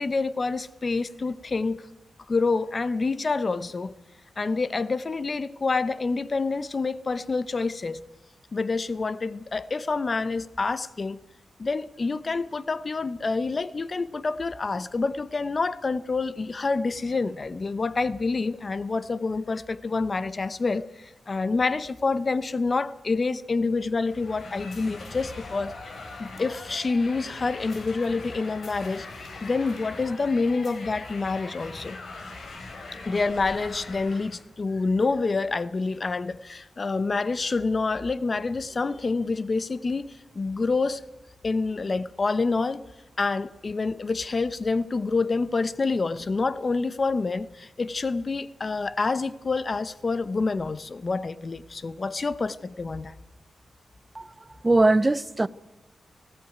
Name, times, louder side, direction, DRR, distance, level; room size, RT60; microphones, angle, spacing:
voice 1, 0.0-1.8 2.3-3.9 4.4-8.0 8.5-11.2 11.6-25.7 26.2-32.0 33.1-41.0 41.4-42.8 43.2-53.1, left 3 dB, 40° left, 0.8 m, -27 dB
sound 1, 24.0-34.4, left 3 dB, 60° left, 4.6 m, -41 dB
voice 2, 54.6-55.5, right 2 dB, 20° right, 0.6 m, -20 dB
19.0 x 15.5 x 9.4 m
wide cardioid pair, 110°, 0 cm